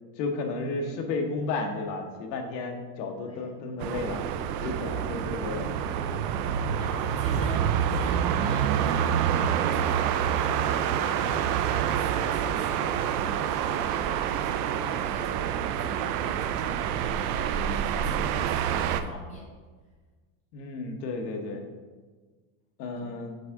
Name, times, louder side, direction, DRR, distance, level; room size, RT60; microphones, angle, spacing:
voice 1, 0.2-4.2 4.6-5.7 20.5-21.6 22.8-23.4, left 3 dB, 80° left, 4 dB, 1.2 m, -32 dB
voice 2, 3.2-3.5 4.7-5.1 6.3-19.5 23.0-23.1, equal, 15° left, -3 dB, 0.7 m, -44 dB
sound 1, 3.8-19.0, right 9 dB, 65° right, 0.5 m, -27 dB
8.1 x 3.6 x 3.6 m, 1.4 s
supercardioid pair, 175°, 50 cm